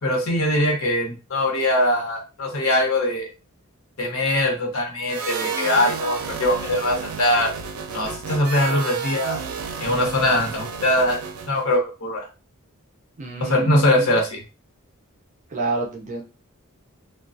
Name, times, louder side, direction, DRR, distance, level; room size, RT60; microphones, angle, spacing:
voice 1, 0.0-3.3 4.0-7.5 7.9-9.4 9.8-11.2 11.5-12.3 13.4-14.4, left 1 dB, 75° left, 1 dB, 0.9 m, -22 dB
sound 1, 5.1-11.6, right 5 dB, 90° right, 0.4 m, -31 dB
voice 2, 13.2-14.1 15.5-16.2, right 2 dB, 35° right, 0 dB, 0.5 m, -28 dB
2.3 x 2.2 x 2.5 m, 0.32 s
head